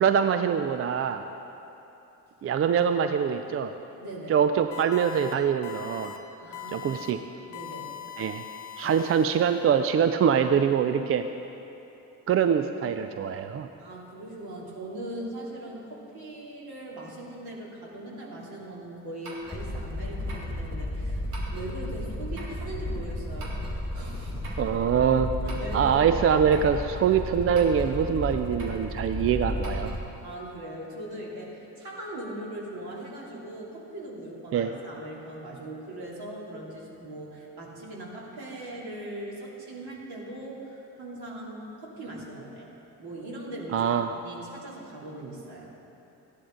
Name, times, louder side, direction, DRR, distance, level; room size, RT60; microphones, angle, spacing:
voice 1, 0.0-1.2 2.4-3.8 4.3-6.1 6.7-7.2 8.2-8.4 8.8-11.3 12.3-13.7 24.6-25.3 25.7-29.9 34.5-34.7 43.7-44.1, right 7 dB, 30° right, 9 dB, 0.4 m, -24 dB
voice 2, 4.0-4.4 6.4-7.1 7.5-8.0 13.8-24.5 25.4-26.0 30.2-42.7 43.0-43.9 44.2-45.7, right 1 dB, 50° right, -4 dB, 3.0 m, -40 dB
sound 1, 4.7-5.3 5.6-6.2 6.5-7.1 7.5-9.8, left 11 dB, 55° left, 1.2 m, -41 dB
sound 2, 19.2-19.6 20.3-20.5 21.3-21.7 22.3-22.6 23.4-23.8 24.4-24.7 25.5-25.9 26.5-26.8 27.5-27.9 28.6-28.8 29.6-29.9, right 2 dB, 70° right, 2.1 m, -44 dB
sound 3, 19.4-30.1, left 1 dB, 10° left, 1.6 m, -33 dB
15.0 x 11.0 x 3.9 m, 2.9 s
figure-of-eight pair, 45°, 48 cm